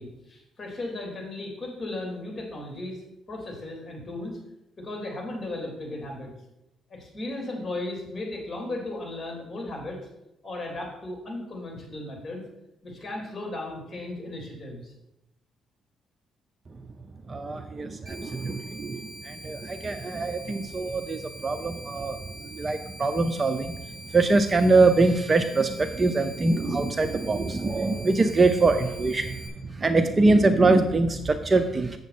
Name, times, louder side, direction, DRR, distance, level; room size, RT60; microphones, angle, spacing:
voice 1, 0.0-3.0 3.3-4.3 4.8-6.3 6.9-10.0 10.4-12.4 12.8-14.9, left 2 dB, 30° left, -1 dB, 3.5 m, -36 dB
voice 2, 17.3-23.8 24.1-29.4 29.8-32.0, right 3 dB, 30° right, 8 dB, 0.6 m, -23 dB
sound 1, 18.1-29.5, equal, 50° right, 3.2 m, -44 dB
7.9 x 7.2 x 4.2 m, 0.86 s
cardioid pair, 90°, 0 cm